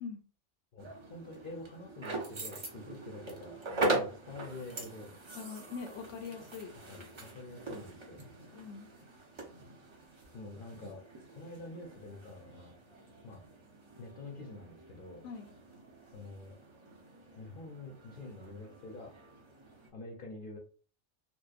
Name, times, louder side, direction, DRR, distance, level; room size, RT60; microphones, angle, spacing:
voice 1, 0.7-3.6 3.9-5.2 6.9-8.3 10.3-12.8 13.2-13.4 14.0-15.3 16.1-16.6 17.3-19.2 19.9-20.6, left 2 dB, 55° left, -1 dB, 0.7 m, -47 dB
sound 1, 0.8-19.9, right 2 dB, 40° right, 0.4 m, -42 dB
voice 2, 5.4-6.7 7.0-7.1 8.5-8.9 15.2-15.5, left 5 dB, 85° left, 5 dB, 0.9 m, -43 dB
2.8 x 2.0 x 2.4 m, 0.39 s
omnidirectional pair, 1.2 m